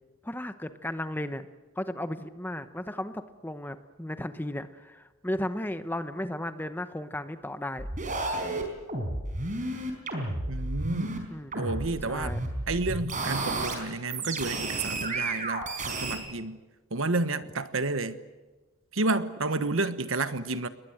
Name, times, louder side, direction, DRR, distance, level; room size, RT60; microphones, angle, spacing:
voice 1, 0.2-1.5 1.8-7.9 11.3-11.6 12.0-12.4, left 1 dB, 10° left, 1.0 m, -35 dB
sound 1, 7.8-11.2 11.5-13.8 14.1-16.2, right 2 dB, 35° right, 4.7 m, -32 dB
voice 2, 10.5-11.3 11.5-12.4 12.7-16.6 16.9-18.2 18.9-20.7, right 3 dB, 70° right, 1.3 m, -30 dB
28.5 x 21.0 x 8.0 m
head